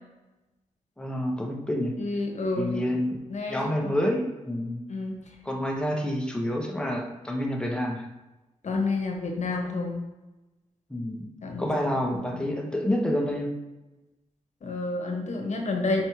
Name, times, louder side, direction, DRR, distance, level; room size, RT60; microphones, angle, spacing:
voice 1, 1.0-2.0 2.6-3.2 3.5-4.8 5.4-8.0 10.9-11.3 11.6-13.5, left 1 dB, 5° left, 1 dB, 1.1 m, -28 dB
voice 2, 2.0-2.9 3.3-3.9 4.9-5.2 8.6-10.0 11.4-11.7 12.1-12.4 14.6-16.0, left 3 dB, 65° left, 2 dB, 1.2 m, -29 dB
4.7 x 4.3 x 4.7 m, 1.1 s
cardioid pair, 80°, 13 cm